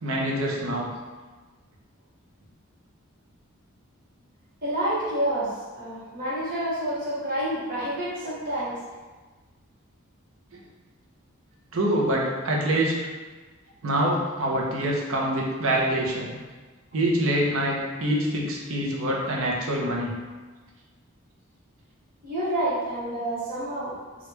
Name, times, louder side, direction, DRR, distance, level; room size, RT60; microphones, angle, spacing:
voice 1, 0.0-0.9 11.7-12.9 13.8-16.4 16.9-20.1, right 1 dB, 70° right, -2 dB, 0.6 m, -25 dB
voice 2, 4.6-8.7 22.2-23.9, right 1 dB, 40° right, -9 dB, 1.1 m, -28 dB
3.2 x 2.4 x 3.0 m, 1.3 s
head